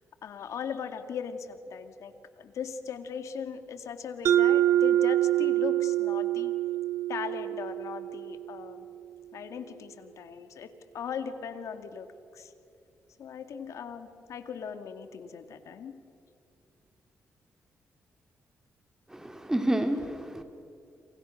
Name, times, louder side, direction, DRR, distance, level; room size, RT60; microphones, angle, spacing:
voice 1, 0.2-6.5 7.1-8.9 9.3-12.1 12.3-12.5 13.2-16.0, left 7 dB, 75° left, 9 dB, 2.1 m, -39 dB
Mallet percussion, 4.3-8.8, right 12 dB, 70° right, 1.0 m, -26 dB
voice 2, 19.1-20.4, right 1 dB, 10° right, 6 dB, 2.8 m, -29 dB
29.0 x 27.0 x 6.5 m, 2.6 s
cardioid pair, 85°, 5 cm